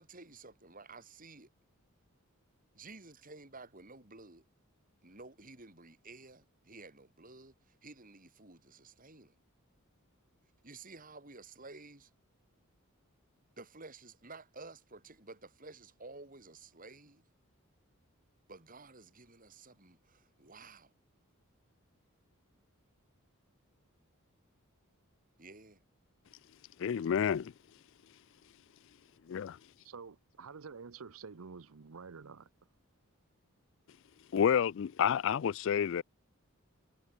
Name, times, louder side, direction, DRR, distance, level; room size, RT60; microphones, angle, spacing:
voice 1, 0.0-1.5 2.7-4.4 5.0-9.3 10.6-12.1 13.6-17.2 18.5-20.9 25.4-25.8, right 3 dB, 40° right, 3.5 m, -52 dB
voice 2, 26.8-27.5 29.3-29.6 34.3-36.0, left 8 dB, 60° left, 0.3 m, -29 dB
voice 3, 29.8-32.5, right 5 dB, 75° right, 0.7 m, -48 dB
head